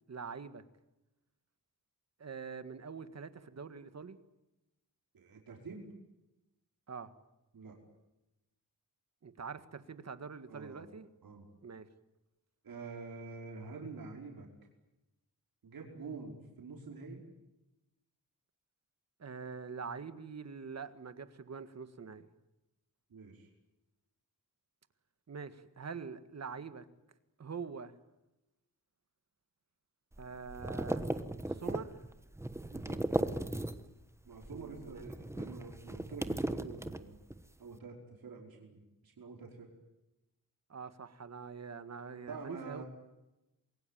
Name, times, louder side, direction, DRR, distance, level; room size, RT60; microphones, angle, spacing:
voice 1, 0.1-0.6 2.2-4.2 6.9-7.1 9.2-11.1 11.6-11.9 19.2-22.3 25.3-26.9 27.4-27.9 30.2-31.1 31.5-31.9 34.5-35.0 40.7-42.8, right 5 dB, 50° right, 11 dB, 1.7 m, -44 dB
voice 2, 5.1-5.9 7.5-7.8 10.5-10.8 11.2-11.4 12.6-14.5 15.6-17.2 23.1-23.5 32.7-33.0 34.2-37.2 37.6-39.7 42.3-42.8, right 4 dB, 85° right, 0 dB, 5.0 m, -47 dB
sound 1, 30.1-34.0 34.3-37.5, right 1 dB, 10° right, 1.2 m, -37 dB
27.5 x 22.0 x 9.2 m, 0.97 s
wide cardioid pair, 165°, 34 cm